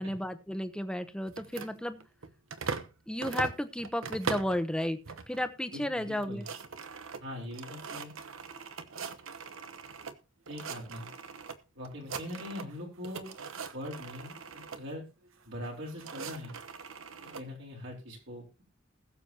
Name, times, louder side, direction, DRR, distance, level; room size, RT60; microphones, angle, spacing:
voice 1, 0.0-2.0 3.1-5.0 5.3-6.4, left 1 dB, 5° left, 10 dB, 0.9 m, -33 dB
sound 1, 1.3-2.9 3.2-4.6 5.1-5.5 5.8-5.9 6.2-10.1 10.5-11.5 11.8-12.8 13.0-14.8 15.6-17.4, right 5 dB, 80° right, 1.0 m, -40 dB
voice 2, 5.7-6.5 7.2-8.1 10.5-11.1 11.8-13.3 13.7-15.0 15.4-16.6 17.2-18.6, left 1 dB, 65° right, -1 dB, 4.0 m, -42 dB
20.5 x 7.1 x 2.9 m, 0.31 s
head